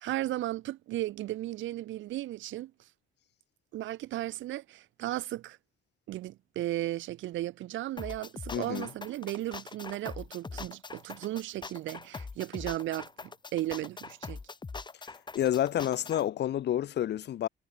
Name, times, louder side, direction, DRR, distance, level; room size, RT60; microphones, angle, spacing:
voice 1, 0.0-2.7 3.7-5.6 6.1-14.4, right 15 dB, 75° right, 0.6 m, -35 dB
sound 1, 8.0-16.2, left 4 dB, 20° left, 1.0 m, -42 dB
voice 2, 8.5-8.9 15.3-17.5, left 11 dB, 60° left, 0.7 m, -29 dB
cardioid pair, 90°, 20 cm